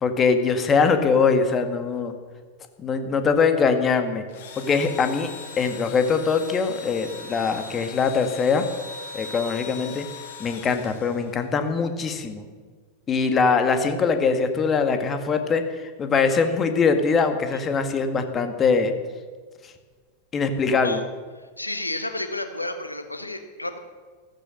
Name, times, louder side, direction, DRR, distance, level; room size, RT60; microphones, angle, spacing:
voice 1, 0.0-2.1 2.8-4.3 4.6-8.6 9.1-10.1 10.4-12.4 13.1-18.9 20.3-21.0, left 5 dB, 25° left, 7 dB, 1.8 m, -22 dB
Engine / Drill, 4.3-11.6, left 5 dB, 55° left, 3.2 m, -40 dB
voice 2, 21.6-23.8, left 2 dB, 85° left, 8 dB, 1.5 m, -31 dB
14.5 x 14.0 x 6.5 m, 1.5 s
figure-of-eight pair, 90°, 0 cm